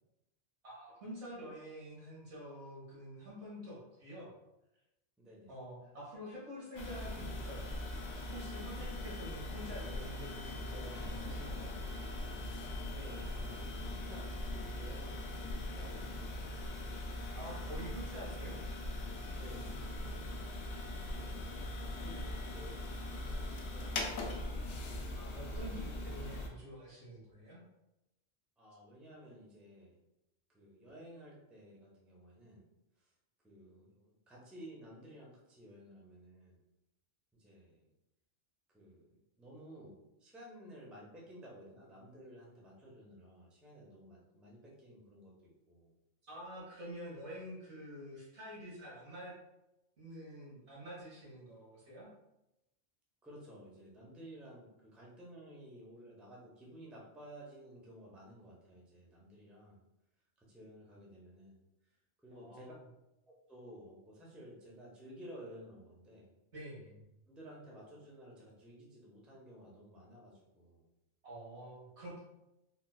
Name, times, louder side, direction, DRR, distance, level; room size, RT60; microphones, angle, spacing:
voice 1, 0.6-4.3 5.5-7.8 8.3-11.8 17.3-18.6 25.2-27.6 46.3-49.3 50.0-52.1 62.3-62.7 66.5-67.0 71.2-72.2, equal, 75° right, -7 dB, 1.3 m, -47 dB
voice 2, 5.2-5.5 8.7-9.1 12.9-16.7 19.3-20.6 21.0-21.4 21.8-24.4 28.6-30.0 30.5-32.6 33.0-33.1 33.4-36.6 37.4-37.9 38.7-45.9 53.2-59.8 60.5-61.6 62.2-62.7 63.5-66.3 67.3-70.8, equal, ahead, -4 dB, 0.4 m, -54 dB
sound 1, 6.8-26.5, left 1 dB, 80° left, 0.9 m, -41 dB
3.8 x 2.3 x 2.3 m, 0.90 s
omnidirectional pair, 1.2 m